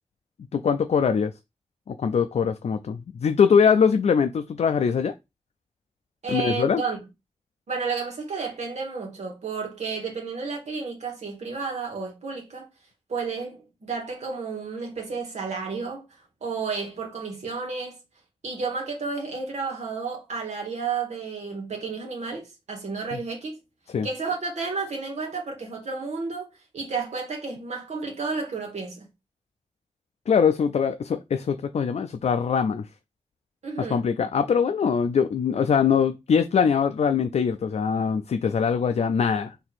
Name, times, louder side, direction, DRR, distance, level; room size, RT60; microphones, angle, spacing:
voice 1, 0.5-1.3 1.9-5.1 6.3-6.8 23.1-23.2 23.9-24.1 30.3-32.9 33.8-39.5, left 6 dB, 75° left, 0.4 m, -22 dB
voice 2, 6.2-7.0 7.7-12.7 13.1-16.0 16.4-18.0 18.4-23.6 24.0-26.5 26.7-29.1 33.6-34.1, right 4 dB, 90° right, 1.5 m, -31 dB
4.5 x 2.8 x 4.1 m
cardioid pair, 55°, 11 cm